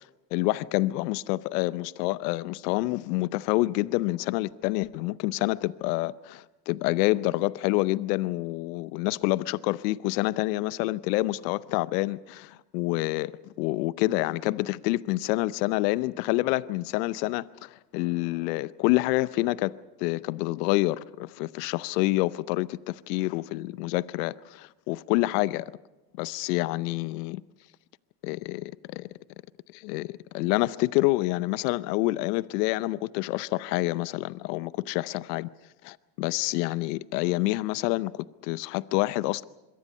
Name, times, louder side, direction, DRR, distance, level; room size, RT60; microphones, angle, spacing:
voice 1, 0.3-13.3 13.6-25.7 26.2-27.4 28.2-29.1 29.7-35.5 35.8-39.4, left 19 dB, 75° left, 0.8 m, -27 dB
25.5 x 23.0 x 5.4 m
hypercardioid pair, 80°, 48 cm